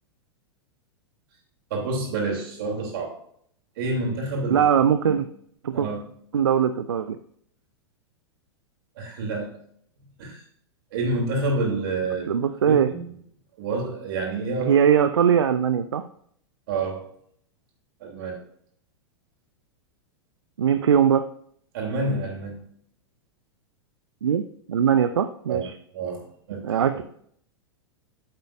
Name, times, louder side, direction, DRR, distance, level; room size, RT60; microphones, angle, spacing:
voice 1, 1.7-3.2 3.8-5.2 5.7-6.1 9.0-9.5 10.2-10.4 10.9-13.1 13.6-14.7 16.7-17.1 18.0-18.4 21.7-22.6 25.5-25.7 25.9-27.0, right 2 dB, 55° right, -1 dB, 3.0 m, -28 dB
voice 2, 4.5-5.3 5.6-5.9 6.3-7.2 12.3-12.9 14.6-16.0 20.6-21.3 24.2-24.4 24.7-25.7 26.6-27.0, right 8 dB, 75° right, 10 dB, 0.5 m, -20 dB
8.8 x 7.5 x 2.5 m, 0.64 s
figure-of-eight pair, 95°, 14 cm